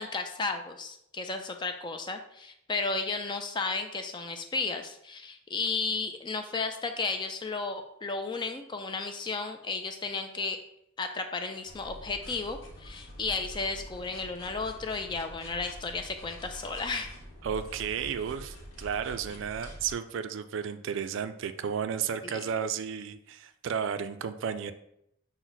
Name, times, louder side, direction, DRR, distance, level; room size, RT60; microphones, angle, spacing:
voice 1, 0.0-10.6 11.0-17.1 22.2-22.4, left 4 dB, 20° left, 6 dB, 0.3 m, -33 dB
sound 1, 11.6-19.9, equal, 75° left, 0.9 m, -46 dB
voice 2, 17.4-24.7, right 7 dB, 65° right, 11 dB, 0.3 m, -33 dB
5.8 x 2.1 x 3.9 m, 0.77 s
head